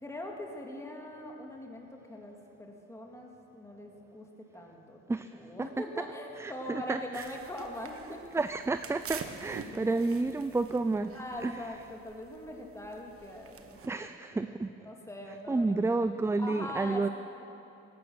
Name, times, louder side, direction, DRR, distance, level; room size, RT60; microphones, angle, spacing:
voice 1, 0.0-4.3 4.5-5.0 5.3-8.2 9.7-10.0 11.1-14.1 14.5-14.6 14.8-15.9 16.4-17.1, left 1 dB, 10° left, 0 dB, 2.2 m, -42 dB
voice 2, 6.4-7.3 8.3-11.6 13.8-14.7 15.5-17.1, right 3 dB, 10° right, 10 dB, 0.3 m, -30 dB
sound 1, 7.1-13.9, right 5 dB, 45° right, 1.2 m, -47 dB
16.5 x 12.5 x 6.3 m, 2.8 s
cardioid pair, 90°, 30 cm